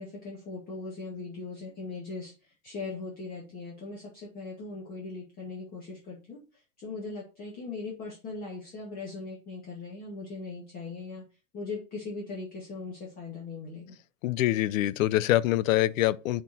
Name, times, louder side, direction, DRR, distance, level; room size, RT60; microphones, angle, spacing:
voice 1, 0.0-11.2 11.5-13.9, left 3 dB, 25° left, 2.0 m, -39 dB
voice 2, 14.2-16.4, left 15 dB, 80° left, 0.7 m, -25 dB
8.0 x 4.5 x 4.2 m
supercardioid pair, 160°, 39 cm